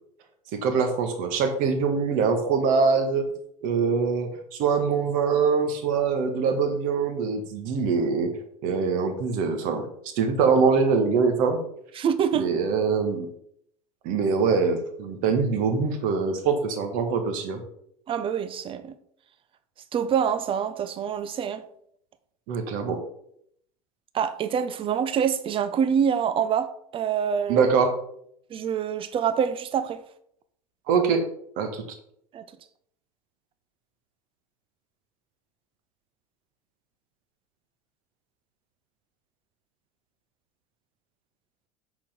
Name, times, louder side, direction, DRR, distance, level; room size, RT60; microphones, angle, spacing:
voice 1, 0.5-3.3 3.6-8.3 8.6-9.9 10.2-11.6 12.3-13.3 14.0-17.6 22.5-23.0 27.5-27.9 30.9-31.2 31.6-31.8, right 5 dB, 45° right, 1.9 m, -23 dB
voice 2, 12.0-12.6 18.1-18.9 19.9-21.6 24.1-27.7 28.5-30.0 32.3-32.4, right 8 dB, 30° right, 0.9 m, -26 dB
8.3 x 6.3 x 5.2 m
figure-of-eight pair, 75°, 19 cm